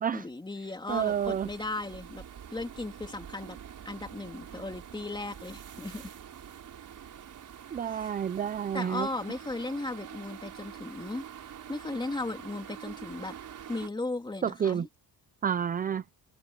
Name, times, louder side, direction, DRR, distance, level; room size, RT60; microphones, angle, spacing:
voice 1, 0.1-2.2 2.5-3.6 3.8-6.1 7.8-8.1 8.7-11.2 11.7-13.4 13.7-14.9, left 2 dB, 10° left, 3.2 m, -36 dB
voice 2, 0.9-1.5 7.7-9.1 14.4-14.9 15.4-16.0, right 8 dB, 25° right, 0.4 m, -29 dB
sound 1, 0.9-13.9, right 9 dB, 50° right, 4.4 m, -46 dB
cardioid pair, 170°, 40 cm